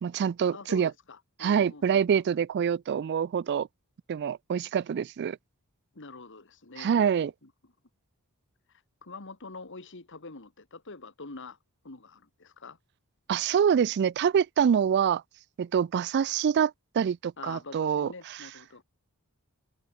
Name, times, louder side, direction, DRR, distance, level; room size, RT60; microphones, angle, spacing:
voice 1, 0.0-0.9 1.4-3.7 4.1-5.4 6.8-7.3 13.3-15.2 15.6-18.1, right 7 dB, 50° right, 0.3 m, -25 dB
voice 2, 0.5-2.2 5.9-6.9 7.2-7.5 8.7-11.6 11.8-12.8 17.4-18.8, left 3 dB, 60° left, 2.0 m, -45 dB
head